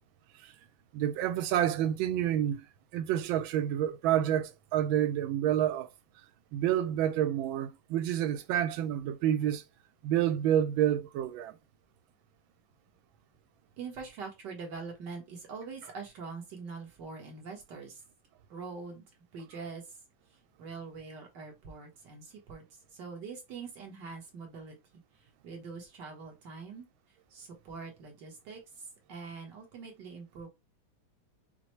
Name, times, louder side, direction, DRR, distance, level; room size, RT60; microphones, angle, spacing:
voice 1, 0.9-2.6 2.9-5.9 6.5-9.6 10.0-11.5, right 11 dB, 85° right, 1.4 m, -28 dB
voice 2, 13.8-18.0 18.5-19.0 19.3-19.8 20.6-22.6 22.9-24.8 25.4-26.9 27.3-28.6 29.1-30.5, right 4 dB, 65° right, 1.8 m, -43 dB
5.8 x 2.1 x 3.1 m
omnidirectional pair, 2.1 m